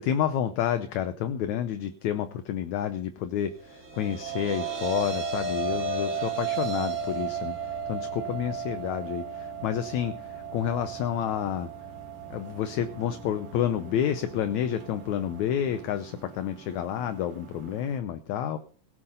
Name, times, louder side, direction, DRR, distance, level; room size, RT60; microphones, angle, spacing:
voice 1, 0.0-11.7 12.3-18.6, left 10 dB, 70° left, 10 dB, 1.9 m, -29 dB
sound 1, 3.5-15.8, right 6 dB, 25° right, 2.7 m, -35 dB
sound 2, 6.0-18.0, right 4 dB, 45° right, 2.3 m, -48 dB
17.0 x 8.6 x 5.4 m, 0.40 s
omnidirectional pair, 3.9 m